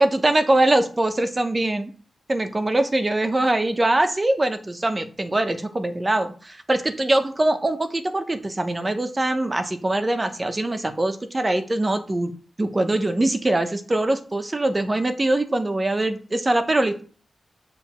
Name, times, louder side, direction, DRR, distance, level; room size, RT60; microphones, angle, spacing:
voice 1, 0.0-1.9 2.3-12.3 12.6-17.0, right 1 dB, 25° right, 8 dB, 0.9 m, -22 dB
7.4 x 3.3 x 5.9 m, 0.40 s
wide cardioid pair, 95°, 0 cm